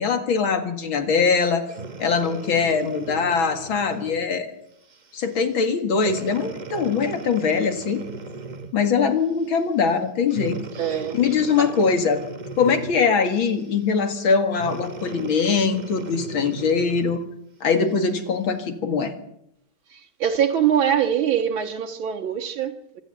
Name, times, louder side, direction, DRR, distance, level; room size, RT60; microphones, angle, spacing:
voice 1, 0.0-1.6 2.0-4.5 5.1-8.0 8.7-10.6 11.1-12.2 12.6-17.2 17.6-19.1, left 5 dB, 90° left, 2.8 m, -22 dB
Breathing, 1.7-4.3 4.9-5.1 6.0-8.9 10.3-13.1 14.5-17.3 17.9-18.0, right 3 dB, 30° right, 0.9 m, -37 dB
voice 2, 10.7-11.7 19.9-23.0, right 9 dB, 90° right, 2.3 m, -24 dB
25.5 x 12.5 x 9.2 m
omnidirectional pair, 2.1 m